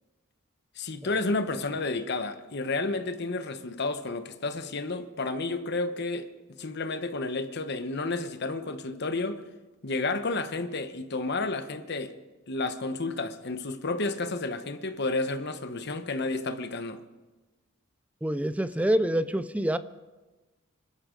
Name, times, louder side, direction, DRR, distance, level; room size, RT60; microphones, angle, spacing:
voice 1, 0.8-6.3 6.6-9.4 9.8-12.1 12.5-17.0, left 3 dB, 55° left, 1.0 m, -31 dB
voice 2, 18.2-19.8, right 1 dB, 5° right, 0.4 m, -26 dB
25.5 x 13.0 x 3.8 m
head